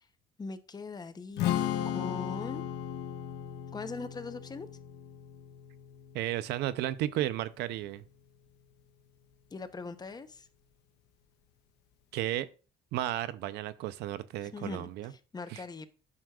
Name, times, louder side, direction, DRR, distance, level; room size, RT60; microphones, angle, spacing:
voice 1, 0.4-1.5 1.8-2.6 3.7-4.7 9.5-10.5 14.5-15.9, left 4 dB, 25° left, 0.7 m, -40 dB
Strum, 1.4-7.6, left 10 dB, 90° left, 0.7 m, -36 dB
voice 2, 6.1-8.0 12.1-12.5 12.9-15.1 15.5-15.6, right 13 dB, 85° right, 0.6 m, -33 dB
9.5 x 6.3 x 2.3 m
cardioid pair, 110°, 17 cm